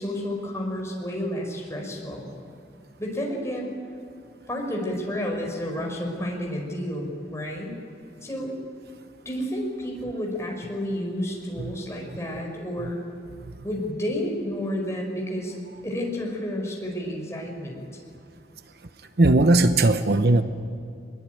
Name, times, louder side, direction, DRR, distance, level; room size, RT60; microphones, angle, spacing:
voice 1, 0.0-2.3 3.0-3.7 4.5-7.7 8.2-8.5 9.3-13.0 13.6-15.6 15.8-17.8, equal, 15° left, -1 dB, 5.4 m, -30 dB
voice 2, 19.2-20.4, right 2 dB, 65° right, 9 dB, 0.9 m, -19 dB
23.0 x 22.0 x 9.3 m, 2.4 s
head